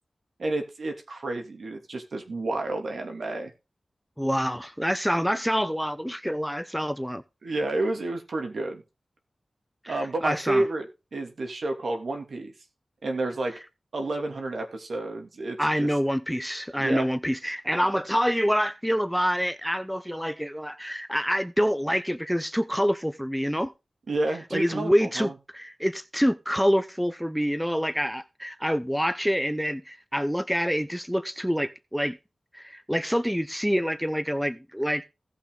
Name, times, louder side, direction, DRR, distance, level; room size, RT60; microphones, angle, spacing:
voice 1, 0.4-3.5 7.4-8.8 9.9-10.9 11.1-12.5 13.0-13.6 13.9-15.9 16.8-17.1 24.1-25.3, right 2 dB, 75° right, 2.8 m, -30 dB
voice 2, 4.2-7.2 9.8-10.6 15.6-23.7 24.5-32.2 32.5-35.0, equal, ahead, 0.8 m, -26 dB
16.5 x 5.9 x 3.9 m
cardioid pair, 55°, 0 cm